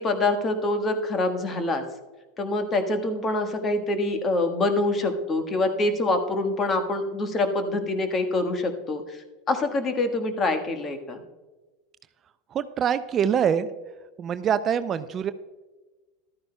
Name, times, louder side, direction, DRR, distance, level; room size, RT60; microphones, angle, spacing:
voice 1, 0.0-1.8 2.4-9.0 9.5-11.2, left 2 dB, 30° left, 7 dB, 1.4 m, -25 dB
voice 2, 12.5-13.7 14.2-15.3, right 8 dB, 35° right, 13 dB, 0.4 m, -24 dB
14.0 x 12.0 x 2.2 m, 1.2 s
hypercardioid pair, 85°, 0 cm